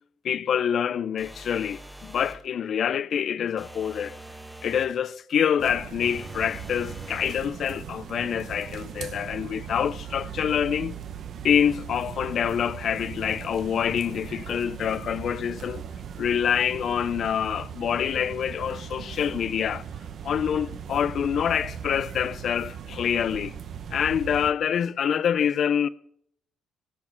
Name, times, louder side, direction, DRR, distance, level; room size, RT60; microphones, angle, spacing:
voice 1, 0.2-4.2 4.6-11.0 11.4-15.8 16.2-19.8 20.2-23.5 23.9-25.9, left 8 dB, 60° left, 0.5 m, -26 dB
sound 1, 1.2-2.5 3.6-5.0 6.0-7.4, right 1 dB, ahead, 1.3 m, -44 dB
sound 2, 5.6-24.5, right 8 dB, 60° right, 1.0 m, -39 dB
18.0 x 7.2 x 5.9 m
cardioid pair, 90°, 0 cm